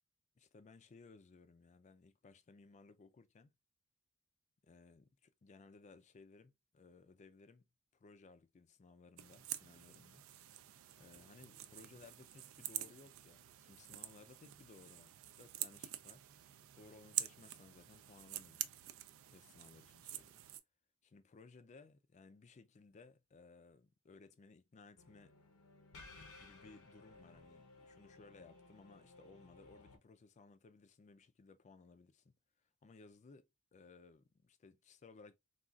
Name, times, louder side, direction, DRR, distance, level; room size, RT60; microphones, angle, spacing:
voice 1, 0.4-3.5 4.6-7.6 7.9-10.2 11.0-16.2 16.7-18.7 19.3-20.4 21.0-25.3 26.4-32.4 32.8-35.4, left 4 dB, 35° left, 0.3 m, -61 dB
sound 1, 9.2-20.6, right 13 dB, 65° right, 0.3 m, -47 dB
sound 2, 25.0-30.0, left 3 dB, 70° left, 0.7 m, -59 dB
3.7 x 2.3 x 2.2 m
head